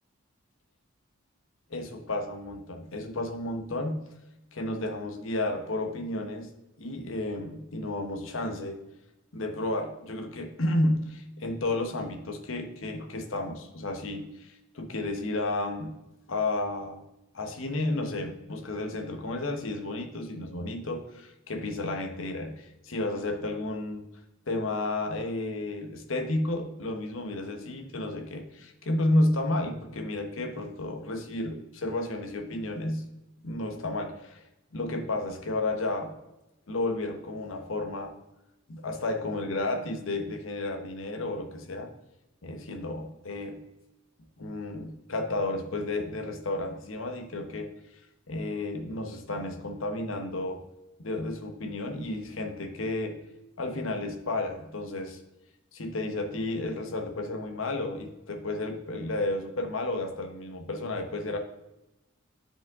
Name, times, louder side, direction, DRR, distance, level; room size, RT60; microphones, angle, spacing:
voice 1, 1.7-4.2 4.5-6.5 6.8-8.8 9.3-16.0 16.3-17.0 17.3-24.0 24.5-33.1 33.4-34.4 34.7-36.1 36.7-38.2 38.7-41.9 42.4-43.6 44.4-47.7 48.3-50.6 51.0-53.2 53.6-55.2 55.7-61.4, left 2 dB, 75° left, 4 dB, 1.0 m, -32 dB
10.5 x 5.1 x 3.6 m, 0.94 s
head